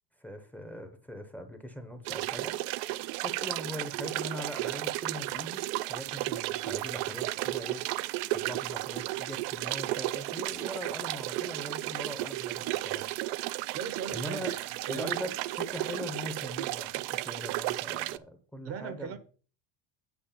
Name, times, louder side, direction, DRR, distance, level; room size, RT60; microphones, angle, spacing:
voice 1, 0.2-2.5 3.2-5.6 5.9-13.1 14.1-14.5 14.9-19.2, equal, 5° left, 0.7 m, -41 dB
sound 1, 2.1-18.2, right 18 dB, 75° right, 0.6 m, -34 dB
voice 2, 13.7-14.6 14.9-15.1 18.6-19.2, right 7 dB, 35° right, 0.7 m, -38 dB
9.1 x 4.8 x 7.2 m
cardioid pair, 180°, 39 cm